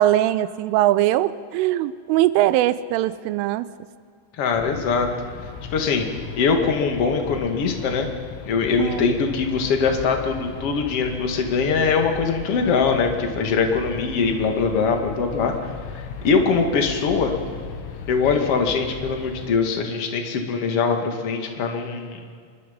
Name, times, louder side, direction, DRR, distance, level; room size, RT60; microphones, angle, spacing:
voice 1, 0.0-3.7 8.8-9.1, right 14 dB, 90° right, 15 dB, 3.3 m, -21 dB
voice 2, 4.4-5.1 5.7-6.1 6.4-8.1 8.4-17.3 18.1-22.2, left 5 dB, 45° left, 4 dB, 2.1 m, -22 dB
sound 1, 4.5-19.5, left 7 dB, 90° left, 4.1 m, -37 dB
26.0 x 22.0 x 5.4 m, 2.1 s
omnidirectional pair, 5.6 m